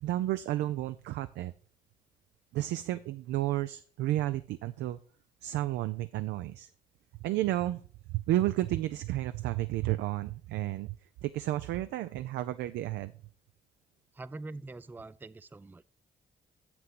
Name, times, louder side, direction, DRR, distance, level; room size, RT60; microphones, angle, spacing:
voice 1, 0.0-1.5 2.5-5.0 5.4-6.7 7.2-7.8 8.1-11.0 11.2-13.1, right 15 dB, 70° right, 0.4 m, -32 dB
voice 2, 14.1-15.8, right 2 dB, 10° right, 0.4 m, -44 dB
7.8 x 6.0 x 4.8 m
hypercardioid pair, 45°, 19 cm